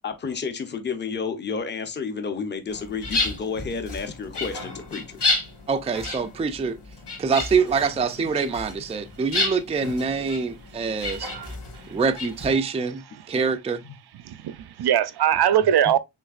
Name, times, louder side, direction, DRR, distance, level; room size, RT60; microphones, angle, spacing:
voice 1, 0.0-5.2 13.8-14.0, left 5 dB, 25° left, 0.6 m, -31 dB
sound 1, 2.7-12.5, left 2 dB, 85° left, 2.1 m, -31 dB
voice 2, 5.7-6.8 7.2-11.3 11.9-13.8, right 5 dB, 15° right, 0.3 m, -25 dB
voice 3, 14.3-16.0, right 10 dB, 70° right, 0.5 m, -21 dB
6.2 x 3.2 x 2.4 m
wide cardioid pair, 160°, 40 cm